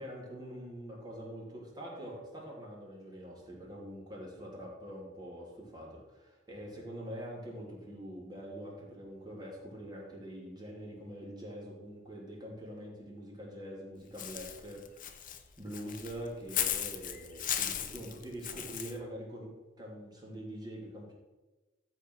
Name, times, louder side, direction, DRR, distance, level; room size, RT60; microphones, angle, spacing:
voice 1, 0.0-15.3 15.6-19.5 19.8-21.1, equal, 20° right, -3 dB, 2.7 m, -44 dB
Walk footsteps / Bird, 14.2-18.9, left 10 dB, 45° left, 0.8 m, -36 dB
12.5 x 4.5 x 6.1 m, 1.2 s
head